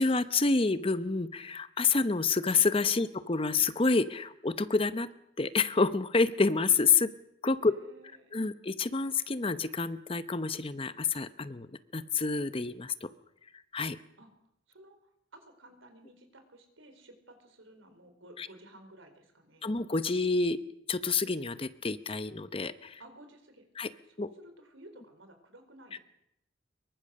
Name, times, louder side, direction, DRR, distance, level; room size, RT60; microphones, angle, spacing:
voice 1, 0.0-5.1 5.4-7.1 7.4-7.7 8.3-13.1 13.7-14.0 18.4-18.5 19.6-20.6 20.9-23.0 23.8-23.9 24.2-24.3 25.9-26.0, left 4 dB, 30° left, 13 dB, 0.8 m, -28 dB
voice 2, 7.6-8.4 14.2-14.3 14.7-15.0 15.3-19.7 23.0-23.7 24.1-26.0, right 1 dB, 85° right, 7 dB, 4.4 m, -54 dB
24.0 x 23.0 x 6.6 m, 0.79 s
head